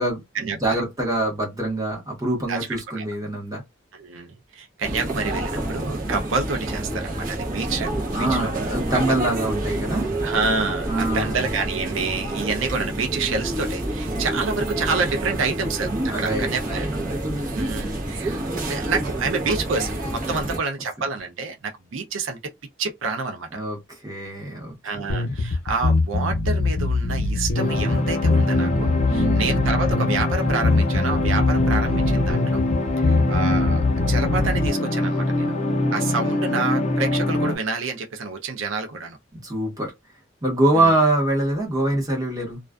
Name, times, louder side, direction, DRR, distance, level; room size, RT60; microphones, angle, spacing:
voice 1, 0.0-3.6 8.1-10.1 10.9-11.5 16.1-17.3 20.3-20.6 23.5-25.4 29.0-29.6 39.4-39.9 40.4-42.6, right 2 dB, 20° right, 1.0 m, -25 dB
voice 2, 3.9-9.2 10.2-16.9 17.4-22.5 22.8-23.6 24.8-32.6 33.0-35.5 35.9-39.2 40.7-41.0, right 4 dB, 80° right, 0.5 m, -28 dB
sound 1, 4.8-20.6, right 1 dB, 45° right, 0.9 m, -28 dB
sound 2, 25.1-34.7, left 3 dB, 90° left, 0.7 m, -23 dB
sound 3, 27.5-37.5, left 1 dB, 35° left, 0.4 m, -24 dB
2.4 x 2.2 x 2.3 m
head